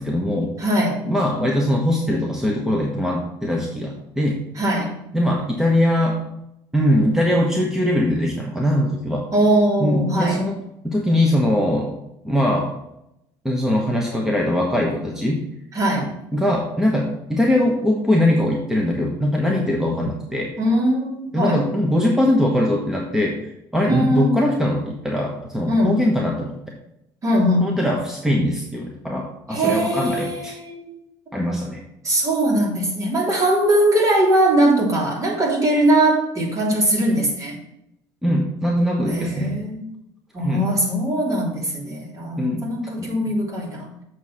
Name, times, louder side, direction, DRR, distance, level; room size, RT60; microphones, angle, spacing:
voice 1, 0.0-0.5 1.1-4.4 5.1-6.2 6.7-9.3 9.8-10.6 10.8-11.9 12.2-12.7 13.4-15.4 16.0-20.5 21.3-26.5 27.6-30.6 31.3-31.8 38.2-39.6 40.4-40.7 42.4-42.6 43.0-43.1, left 1 dB, 5° right, -1 dB, 1.2 m, -21 dB
voice 2, 0.6-1.0 4.6-4.9 9.3-10.4 15.7-16.1 20.6-21.6 23.9-24.4 25.7-26.0 27.2-27.8 29.5-30.9 32.0-37.6 39.0-39.9 40.3-44.0, right 1 dB, 35° right, -2 dB, 3.3 m, -20 dB
7.2 x 4.7 x 5.6 m, 0.81 s
supercardioid pair, 100°, 10 cm